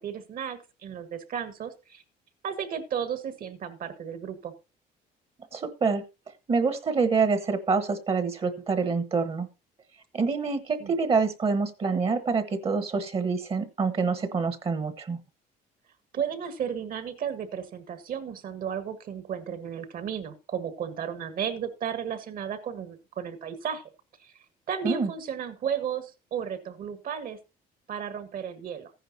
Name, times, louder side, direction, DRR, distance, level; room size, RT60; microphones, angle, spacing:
voice 1, 0.0-2.0 2.4-4.5 10.8-10.9 16.1-23.8 24.2-24.3 24.7-27.4 27.9-28.9, right 8 dB, 55° right, 12 dB, 1.6 m, -34 dB
voice 2, 5.5-6.0 6.5-9.5 10.1-15.2 24.8-25.1, right 4 dB, 35° right, 11 dB, 1.1 m, -26 dB
14.0 x 10.0 x 2.7 m, 0.28 s
cardioid pair, 110°, 17 cm